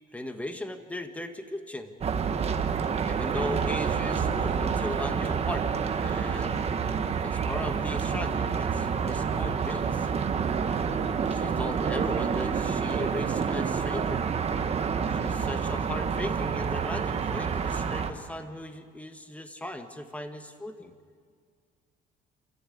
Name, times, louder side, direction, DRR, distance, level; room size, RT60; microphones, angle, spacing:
voice 1, 0.1-2.0 3.0-6.6 7.2-10.1 11.3-14.2 15.0-20.9, left 1 dB, 10° left, 7 dB, 1.8 m, -37 dB
sound 1, 2.0-18.1, right 6 dB, 35° right, 1.4 m, -28 dB
27.5 x 15.0 x 8.7 m, 2.1 s
cardioid pair, 110°, 17 cm